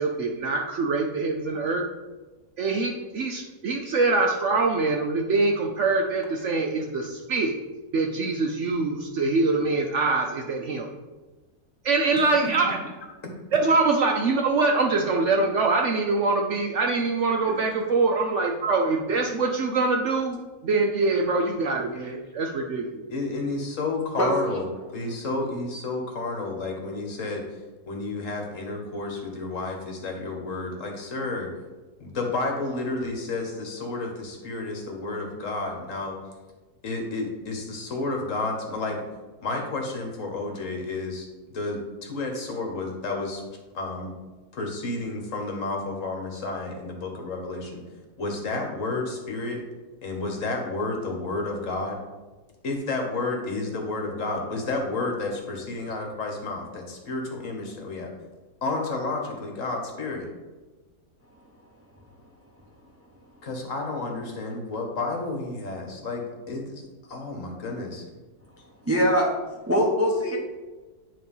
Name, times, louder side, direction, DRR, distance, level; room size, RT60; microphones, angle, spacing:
voice 1, 0.0-1.8 2.6-7.5 7.9-10.9 11.8-12.8 13.5-23.0, right 3 dB, 60° right, 2 dB, 0.8 m, -24 dB
voice 2, 12.1-12.5 13.2-13.3 17.4-17.7 21.9-22.1 23.1-24.6 24.9-27.4 27.9-31.5 32.0-36.2 36.8-39.0 39.4-43.4 43.7-44.1 44.5-47.8 48.2-49.6 50.0-52.0 52.6-58.1 58.6-60.3 63.4-68.0, left 3 dB, 55° left, 2 dB, 1.5 m, -31 dB
voice 3, 68.9-69.3 69.7-70.4, equal, 15° right, -1 dB, 0.7 m, -21 dB
9.4 x 3.1 x 5.4 m, 1.2 s
omnidirectional pair, 1.7 m